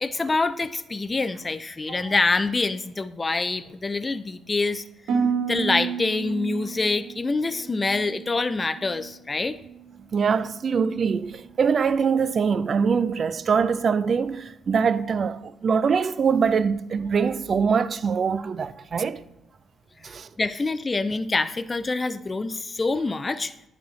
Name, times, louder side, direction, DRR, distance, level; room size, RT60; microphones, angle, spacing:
voice 1, 0.0-4.8 5.5-9.6 20.4-23.5, left 3 dB, 25° left, 0.3 m, -26 dB
Harp, 5.1-9.2 9.5-10.0 10.5-10.9, right 6 dB, 80° right, 1.5 m, -31 dB
voice 2, 10.1-19.2 20.0-20.3, right 6 dB, 45° right, 0.4 m, -23 dB
10.5 x 4.0 x 3.2 m
cardioid pair, 90°, 0 cm